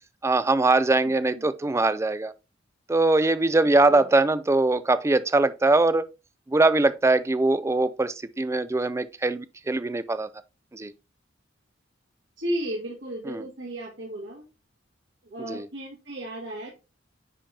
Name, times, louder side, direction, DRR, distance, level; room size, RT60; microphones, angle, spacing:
voice 1, 0.2-2.3 2.9-6.0 6.5-10.3 10.7-10.9 13.3-13.4 15.5-15.7, right 2 dB, 15° right, 0.4 m, -22 dB
voice 2, 12.4-14.4 15.2-16.7, right 1 dB, 70° right, 2.0 m, -34 dB
9.9 x 3.8 x 2.8 m
head